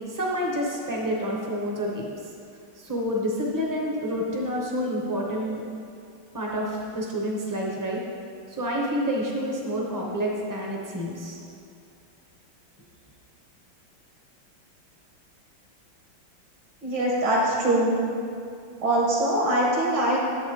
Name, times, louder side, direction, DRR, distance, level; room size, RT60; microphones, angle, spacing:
voice 1, 0.1-2.1 2.8-5.6 6.3-8.0 8.5-11.4, equal, 30° right, -2 dB, 0.3 m, -28 dB
voice 2, 16.8-18.0 18.8-20.2, right 1 dB, 75° right, -4 dB, 2.1 m, -22 dB
9.4 x 7.5 x 3.2 m, 2.5 s
omnidirectional pair, 2.2 m